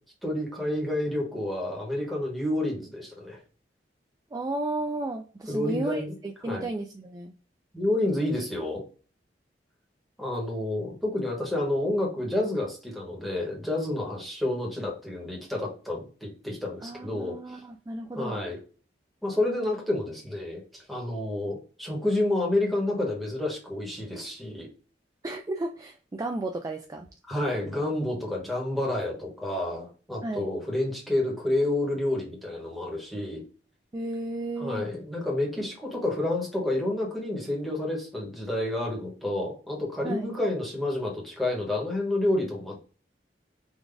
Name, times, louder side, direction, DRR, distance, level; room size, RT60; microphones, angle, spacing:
voice 1, 0.2-3.4 5.5-6.1 6.4-6.7 7.7-8.8 10.2-17.4 18.1-18.6 19.2-24.7 27.3-33.4 34.6-42.8, left 1 dB, ahead, -2 dB, 1.2 m, -29 dB
voice 2, 4.3-7.3 16.8-18.4 25.2-27.1 30.2-30.5 33.9-34.9 40.0-40.3, right 2 dB, 20° right, 3 dB, 0.3 m, -33 dB
3.8 x 2.4 x 3.4 m, 0.38 s
head